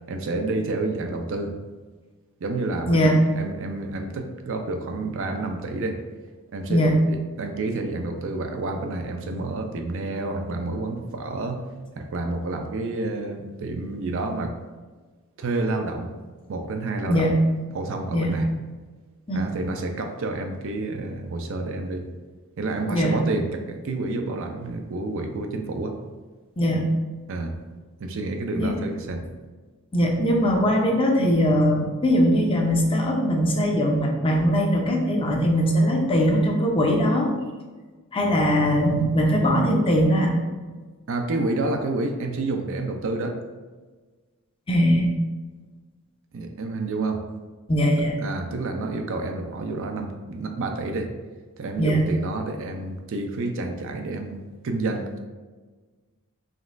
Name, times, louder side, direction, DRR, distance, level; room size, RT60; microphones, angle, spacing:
voice 1, 0.1-1.5 2.4-6.0 6.5-11.7 12.0-14.6 15.4-16.2 16.5-17.3 17.7-18.5 19.3-22.1 22.6-26.0 27.3-27.6 28.0-29.2 41.1-43.4 46.3-47.2 48.2-51.1 51.6-55.2, right 2 dB, 60° right, 5 dB, 0.4 m, -29 dB
voice 2, 17.1-17.4 18.1-18.4 19.3-19.5 22.9-23.2 26.6-26.9 28.5-28.7 29.9-37.3 38.1-40.4 44.7-45.1 47.7-48.1 51.8-52.1, equal, 25° left, 1 dB, 0.5 m, -21 dB
5.1 x 3.0 x 2.5 m, 1.3 s
head